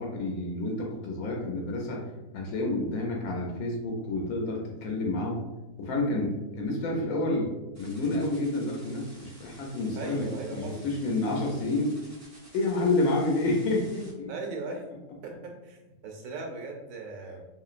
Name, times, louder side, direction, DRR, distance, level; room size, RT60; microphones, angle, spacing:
voice 1, 0.0-2.0 2.3-5.4 5.8-12.0 12.5-14.3, left 2 dB, 75° left, -1 dB, 1.1 m, -29 dB
sound 1, 7.7-14.1, right 1 dB, 25° right, 0.3 m, -53 dB
voice 2, 10.0-10.8 14.3-14.8 15.2-17.4, right 3 dB, 70° right, 2 dB, 1.0 m, -38 dB
2.9 x 2.8 x 2.4 m, 1.1 s
omnidirectional pair, 1.5 m